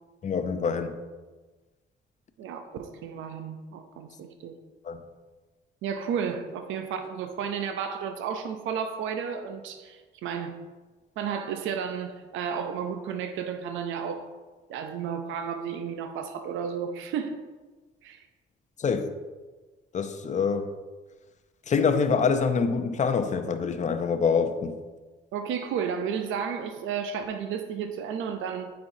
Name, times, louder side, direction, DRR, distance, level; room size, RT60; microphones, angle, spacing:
voice 1, 0.2-1.0 4.8-5.0 18.8-19.1 19.9-20.7 21.7-24.8, left 5 dB, 35° left, 8 dB, 0.6 m, -25 dB
voice 2, 2.4-4.5 5.8-10.6 11.2-14.3 14.7-17.4 18.0-18.2 25.3-28.7, right 7 dB, 85° right, 7 dB, 0.5 m, -32 dB
9.2 x 4.4 x 2.7 m, 1.3 s
cardioid pair, 90°, 20 cm